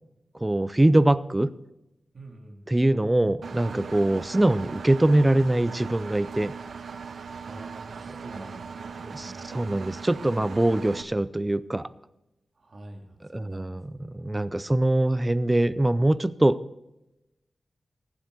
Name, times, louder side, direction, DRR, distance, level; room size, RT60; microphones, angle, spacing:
voice 1, 0.4-1.5 2.7-6.5 9.1-11.9 13.3-13.8 14.1-16.6, right 1 dB, 15° right, 15 dB, 0.5 m, -23 dB
voice 2, 2.1-2.7 7.4-9.6 12.5-14.7, right 1 dB, 45° right, 1 dB, 2.7 m, -46 dB
Engine, 3.4-11.0, right 5 dB, 70° right, 0.8 m, -39 dB
21.0 x 8.1 x 4.0 m, 0.92 s
wide cardioid pair, 165°, 0 cm